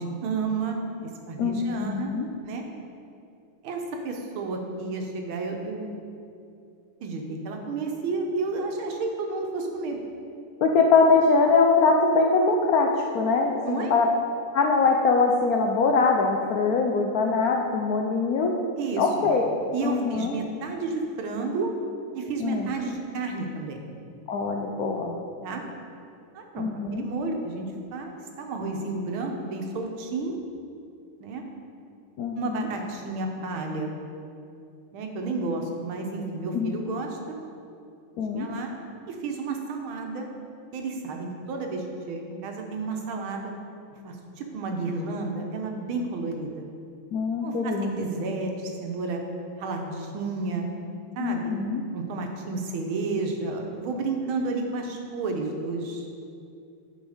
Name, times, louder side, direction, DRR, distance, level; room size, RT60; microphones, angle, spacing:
voice 1, 0.0-2.1 2.5-2.7 3.6-5.9 7.0-10.0 13.6-13.9 18.8-19.3 19.7-21.7 22.1-23.9 25.4-25.6 26.3-30.4 31.2-31.4 32.4-33.9 34.9-37.2 38.3-38.7 39.1-40.3 40.7-43.5 44.0-46.6 47.4-49.2 49.6-50.7 51.2-51.6 51.9-56.1, right 3 dB, 75° right, 3 dB, 1.7 m, -31 dB
voice 2, 1.4-2.3 10.6-12.9 13.1-14.1 14.5-18.5 19.0-19.5 19.8-20.3 22.4-22.7 24.3-25.1 26.6-27.0 32.2-32.7 36.5-36.7 38.2-38.5 47.1-48.1 51.2-51.8, left 4 dB, 85° left, 1 dB, 0.8 m, -22 dB
10.5 x 4.5 x 4.9 m, 2.6 s
omnidirectional pair, 2.3 m